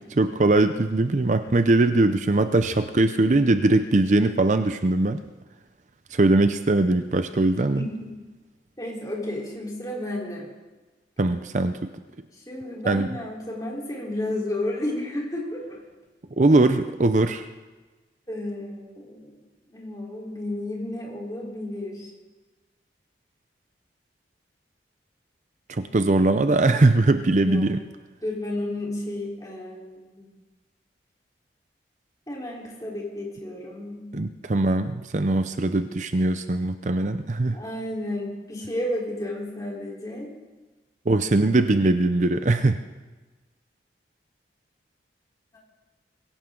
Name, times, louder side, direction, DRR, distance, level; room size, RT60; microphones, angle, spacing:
voice 1, 0.2-5.2 6.1-7.9 11.2-11.9 12.9-13.1 16.4-17.5 25.7-27.8 34.1-37.6 41.1-42.8, right 2 dB, 40° right, 9 dB, 0.6 m, -21 dB
voice 2, 7.7-8.1 8.8-10.5 12.5-15.8 18.3-19.3 19.7-22.1 27.4-27.6 28.2-29.9 30.1-30.3 32.3-34.0 37.5-40.3, left 1 dB, 20° left, -3 dB, 3.9 m, -32 dB
22.5 x 16.5 x 3.8 m, 1.2 s
head